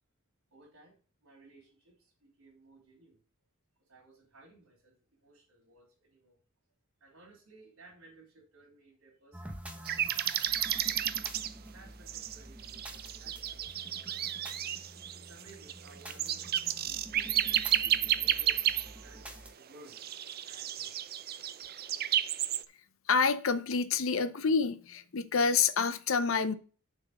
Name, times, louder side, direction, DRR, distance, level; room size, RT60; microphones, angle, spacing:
voice 1, 0.5-3.2 3.8-6.4 7.0-11.1 11.7-14.4 15.0-20.1 20.4-21.1, right 2 dB, 75° right, 3.7 m, -59 dB
sound 1, 9.3-19.5, right 1 dB, 5° right, 1.1 m, -48 dB
sound 2, 9.9-11.5 12.1-19.2 19.9-22.7, right 11 dB, 45° right, 0.5 m, -32 dB
voice 2, 23.1-26.5, left 5 dB, 65° left, 0.7 m, -28 dB
7.1 x 4.6 x 6.6 m
head